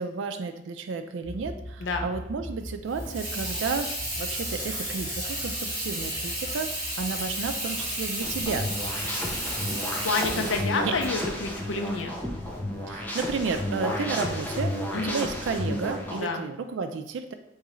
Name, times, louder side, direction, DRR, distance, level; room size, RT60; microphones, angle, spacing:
voice 1, 0.0-8.7 10.3-10.5 10.8-11.0 12.9-17.3, right 4 dB, 85° right, 8 dB, 0.4 m, -32 dB
sound 1, 1.2-12.5, equal, 30° left, 1.1 m, -43 dB
Water tap faucet / Sink (filling or washing), 2.9-12.5, right 1 dB, 15° right, 1.4 m, -33 dB
sound 2, 8.2-16.2, left 1 dB, 10° left, 0.4 m, -32 dB
voice 2, 10.0-12.1 14.9-15.2 16.2-16.4, left 3 dB, 85° left, 5 dB, 0.5 m, -29 dB
3.6 x 3.1 x 3.0 m, 0.83 s
head